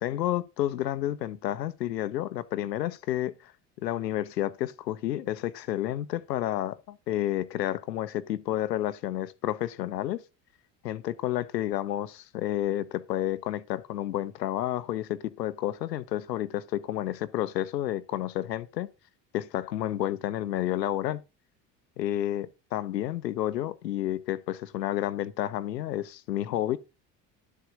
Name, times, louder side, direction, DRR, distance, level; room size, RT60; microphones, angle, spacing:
voice 1, 0.0-3.5 3.8-10.2 10.8-18.9 19.3-21.2 22.0-26.8, left 13 dB, 85° left, 0.9 m, -30 dB
11.5 x 8.1 x 3.8 m
hypercardioid pair, 60°, 48 cm